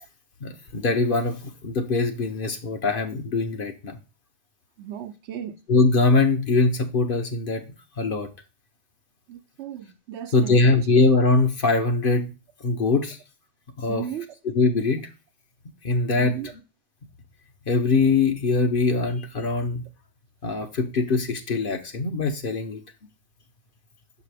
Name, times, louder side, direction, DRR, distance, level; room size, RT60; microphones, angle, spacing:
voice 1, 0.4-4.0 5.7-7.6 8.0-8.3 10.3-12.3 12.6-13.2 13.8-14.0 14.5-15.1 15.8-16.4 17.7-19.8 20.4-22.8, left 3 dB, 55° left, 1.0 m, -22 dB
voice 2, 4.8-5.6 9.3-10.7 13.9-14.3 16.1-16.5, right 10 dB, 80° right, 0.9 m, -35 dB
6.6 x 4.9 x 3.3 m
omnidirectional pair, 1.2 m